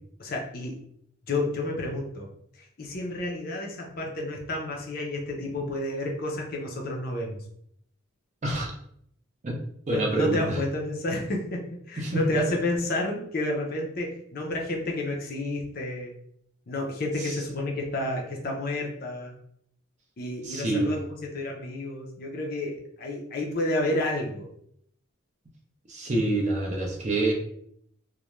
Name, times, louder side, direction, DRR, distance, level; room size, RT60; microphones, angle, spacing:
voice 1, 0.2-0.7 1.3-2.3 2.8-7.4 9.9-11.6 11.9-16.1 16.7-19.3 20.2-21.0 21.3-24.5, left 1 dB, 45° left, 0 dB, 0.5 m, -30 dB
voice 2, 9.9-10.6 12.0-12.4 17.2-17.4 20.4-21.0 25.9-27.3, right 2 dB, 35° right, 0 dB, 0.5 m, -27 dB
2.4 x 2.1 x 3.0 m, 0.69 s
head